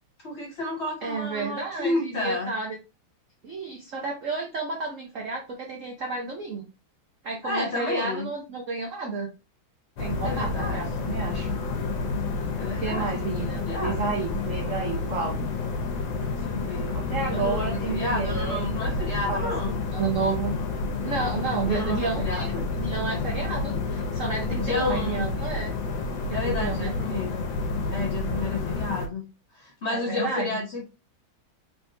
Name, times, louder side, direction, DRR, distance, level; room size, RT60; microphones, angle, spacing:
voice 1, 0.2-2.5 7.4-8.3 10.2-10.8 12.6-14.1 16.5-17.0 17.3-19.7 21.7-22.6 24.5-25.2 26.3-27.5 27.8-29.2 29.5-30.8, left 2 dB, 35° left, 1.4 m, -31 dB
voice 2, 1.0-2.8 3.4-6.6 7.2-9.3 10.0-11.5 12.8-15.4 16.9-18.8 19.3-19.5 19.9-20.6 21.0-22.5 22.8-25.7 26.3-26.9 29.9-30.5, right 4 dB, 70° right, 0.7 m, -31 dB
sound 1, 10.0-29.1, left 3 dB, 70° left, 1.5 m, -29 dB
3.7 x 3.6 x 2.6 m
omnidirectional pair, 2.4 m